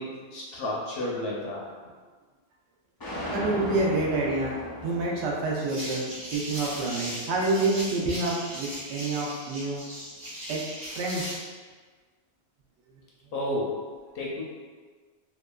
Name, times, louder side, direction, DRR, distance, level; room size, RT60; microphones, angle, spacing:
voice 1, 0.0-1.6 13.3-13.7 14.1-14.4, left 1 dB, 65° left, -4 dB, 0.7 m, -31 dB
sound 1, 3.0-9.1, left 1 dB, 35° left, 0.3 m, -39 dB
voice 2, 3.3-9.8 10.5-10.6 10.9-11.4, right 2 dB, 80° right, -2 dB, 0.8 m, -28 dB
sound 2, 5.6-11.5, equal, 40° right, 0.5 m, -38 dB
2.8 x 2.3 x 2.2 m, 1.4 s
omnidirectional pair, 1.1 m